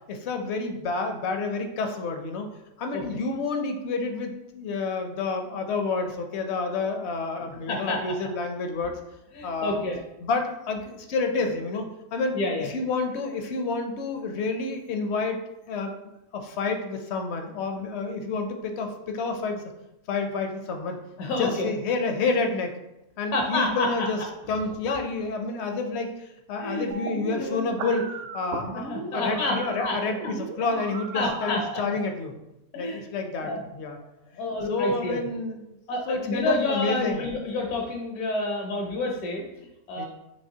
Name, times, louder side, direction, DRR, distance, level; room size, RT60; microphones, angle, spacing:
voice 1, 0.1-2.5 2.8-9.0 9.4-9.8 10.2-12.3 12.7-15.4 15.7-15.9 16.3-19.6 20.1-21.0 21.4-22.7 23.2-24.2 24.5-26.1 26.5-32.3 32.8-34.0 34.7-35.8 36.1-37.2 40.0-40.1, left 3 dB, 65° left, 5 dB, 0.7 m, -29 dB
voice 2, 7.4-8.2 9.3-10.0 12.3-12.7 21.2-21.7 23.3-24.1 26.6-26.9 27.3-27.7 28.7-30.0 30.7-30.8 31.1-31.6 32.7-33.0 33.4-33.6 34.4-35.2 35.9-40.1, left 2 dB, 85° left, 1 dB, 1.2 m, -29 dB
sound 1, 26.9-31.9, right 4 dB, 65° right, 0.8 m, -36 dB
6.6 x 2.8 x 2.8 m, 0.92 s
omnidirectional pair, 1.5 m